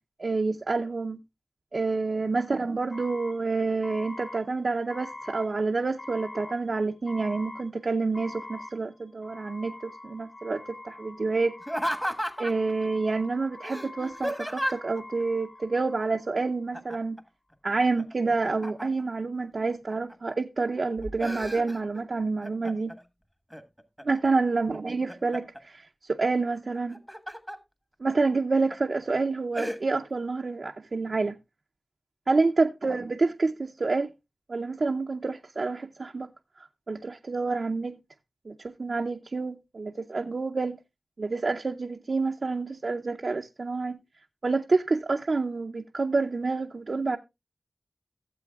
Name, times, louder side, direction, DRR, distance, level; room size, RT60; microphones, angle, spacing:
voice 1, 0.2-1.2 1.7-11.5 12.4-17.2 17.6-22.9 24.0-27.0 28.0-31.4 32.3-34.1 34.5-36.3 36.9-38.0 38.5-40.8 41.2-44.0 44.4-47.2, right 3 dB, 65° right, 0.6 m, -28 dB
sound 1, 2.9-16.5, left 2 dB, 55° left, 3.1 m, -44 dB
Laughter, 11.6-12.7 13.6-15.0 16.7-17.2 17.5-19.1 19.7-20.3 20.8-22.0 22.4-23.0 23.5-24.3 24.7-25.6 26.8-27.6 28.1-28.2 28.7-29.0 29.5-29.8, equal, 5° left, 1.4 m, -34 dB
16.5 x 7.7 x 2.3 m
cardioid pair, 45°, 0 cm